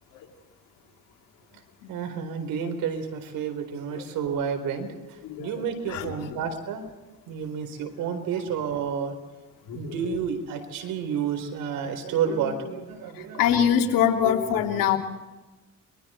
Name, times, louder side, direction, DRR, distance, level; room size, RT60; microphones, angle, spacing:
voice 1, 1.9-6.8 7.3-9.2 9.7-13.4, right 7 dB, 85° right, 7 dB, 4.2 m, -30 dB
voice 2, 13.4-15.0, left 9 dB, 85° left, 2 dB, 3.2 m, -23 dB
30.0 x 23.5 x 4.5 m, 1.2 s
cardioid pair, 100°, 33 cm